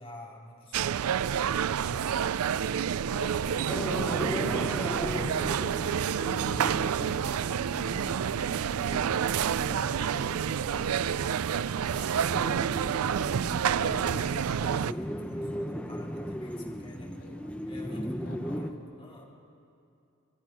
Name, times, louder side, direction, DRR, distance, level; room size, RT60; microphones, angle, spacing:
voice 1, 0.0-13.2 13.6-17.2 17.7-19.2, left 1 dB, 25° left, -3 dB, 3.7 m, -47 dB
sound 1, 0.7-14.9, right 8 dB, 85° right, 0.4 m, -29 dB
sound 2, 3.7-18.7, equal, 5° left, 0.9 m, -37 dB
voice 2, 15.5-16.2 17.1-17.6 17.9-18.7, left 1 dB, 65° left, 1 dB, 3.4 m, -53 dB
25.5 x 20.5 x 6.1 m, 2.6 s
head